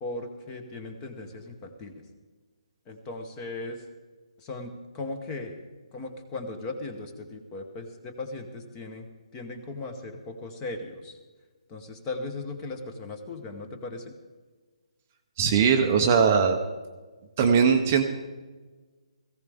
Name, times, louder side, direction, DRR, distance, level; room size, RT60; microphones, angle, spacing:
voice 1, 0.0-1.9 2.9-3.8 4.4-5.6 5.9-9.1 9.3-11.2 11.7-14.1, left 2 dB, 10° left, 6 dB, 0.8 m, -37 dB
voice 2, 15.4-16.6 17.4-18.0, right 6 dB, 20° right, 4 dB, 0.6 m, -20 dB
18.0 x 15.5 x 3.5 m, 1.3 s
hypercardioid pair, 180°, 3 cm